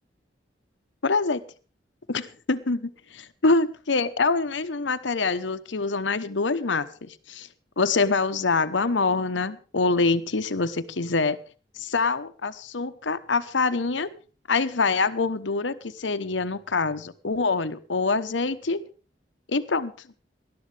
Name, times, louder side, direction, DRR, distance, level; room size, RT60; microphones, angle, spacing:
voice 1, 1.0-1.4 2.1-7.5 7.8-11.4 11.8-14.1 14.5-18.8 19.5-19.9, left 3 dB, 90° left, 12 dB, 1.0 m, -25 dB
20.0 x 12.5 x 3.4 m, 0.38 s
head